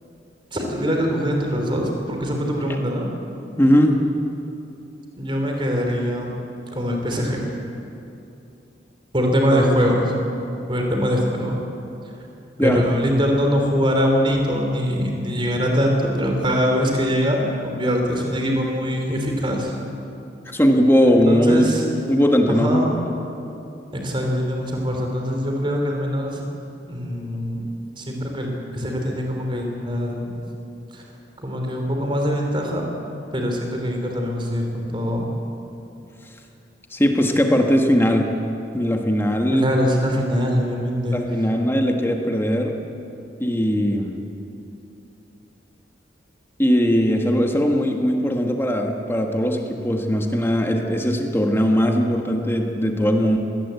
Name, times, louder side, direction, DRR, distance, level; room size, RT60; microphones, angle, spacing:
voice 1, 0.5-3.1 5.2-6.3 6.7-7.4 9.1-10.1 10.7-11.6 12.6-19.7 21.3-21.8 22.5-22.9 23.9-26.4 26.9-27.6 28.0-30.4 30.9-31.0 31.4-32.8 33.3-35.3 39.5-41.2, equal, 25° right, 2 dB, 3.5 m, -23 dB
voice 2, 3.6-3.9 12.6-12.8 20.5-21.7 22.1-23.0 36.9-38.3 38.7-39.7 41.1-42.7 43.4-44.2 46.6-53.4, equal, 15° left, 3 dB, 1.6 m, -19 dB
21.0 x 18.5 x 8.4 m, 2.8 s
head